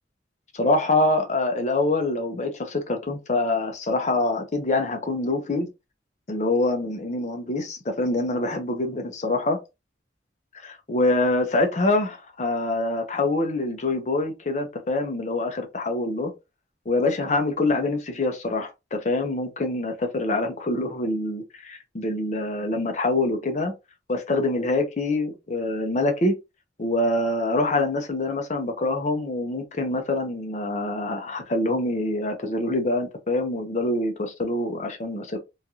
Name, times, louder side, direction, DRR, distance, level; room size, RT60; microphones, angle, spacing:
voice 1, 0.5-5.7 6.3-9.6 10.5-16.3 16.9-23.7 24.1-26.3 26.8-35.4, left 2 dB, 40° left, 0.6 m, -25 dB
3.1 x 2.3 x 2.6 m
head